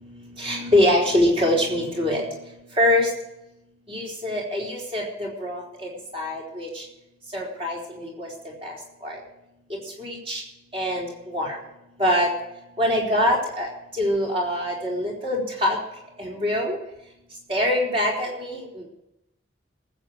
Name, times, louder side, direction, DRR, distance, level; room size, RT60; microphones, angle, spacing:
voice 1, 0.4-2.2 2.8-3.1 3.9-6.8 7.3-8.3 8.6-8.7 9.0-9.2 10.0-10.4 10.7-11.6 12.0-12.3 12.8-13.7 14.0-15.8 16.2-16.8 17.5-18.7, left 1 dB, 30° right, -3 dB, 4.3 m, -24 dB
19.0 x 8.2 x 6.4 m, 0.86 s
head